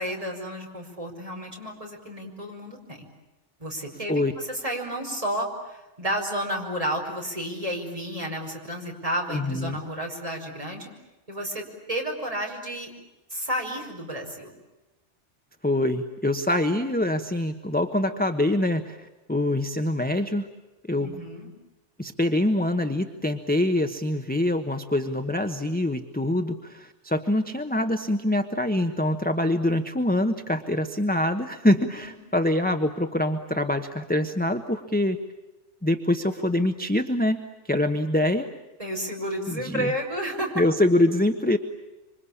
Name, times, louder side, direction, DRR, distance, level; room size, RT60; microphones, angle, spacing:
voice 1, 0.0-3.1 3.6-10.9 11.3-12.9 13.3-14.5 20.9-21.5 32.0-32.1 38.8-40.5, equal, 30° right, 1 dB, 5.4 m, -31 dB
voice 2, 9.3-9.8 15.6-20.5 20.9-21.2 22.0-35.2 35.8-38.5 39.5-39.9 40.5-41.6, left 1 dB, 10° left, 7 dB, 1.1 m, -25 dB
26.5 x 25.5 x 8.7 m, 1.1 s
omnidirectional pair, 1.2 m